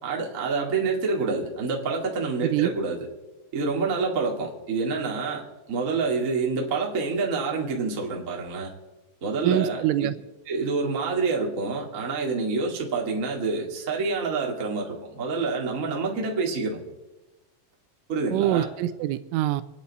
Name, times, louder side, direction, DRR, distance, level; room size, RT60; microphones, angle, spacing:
voice 1, 0.0-3.1 3.5-8.7 9.2-9.8 10.5-16.8 18.1-18.7, right 4 dB, 65° right, -1 dB, 0.8 m, -27 dB
voice 2, 9.4-10.1 18.3-19.6, right 12 dB, 85° right, 11 dB, 3.1 m, -24 dB
28.0 x 9.7 x 4.2 m, 1.1 s
omnidirectional pair, 5.7 m